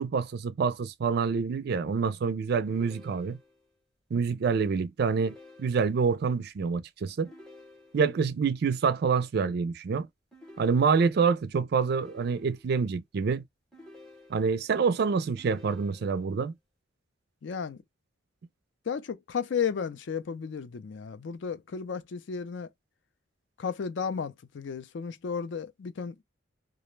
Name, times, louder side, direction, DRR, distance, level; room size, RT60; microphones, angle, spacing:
voice 1, 0.0-3.4 4.1-7.3 7.9-10.1 10.6-13.4 14.3-16.5, right 5 dB, 50° right, 0.3 m, -27 dB
sound 1, 2.7-3.7 5.1-6.2 7.2-8.3 10.3-11.3 11.9-12.9 13.7-14.7 15.4-16.4, left 1 dB, 5° left, 0.7 m, -53 dB
voice 2, 17.4-17.8 18.9-22.7 23.6-26.2, left 6 dB, 60° left, 0.4 m, -33 dB
2.4 x 2.0 x 3.1 m
head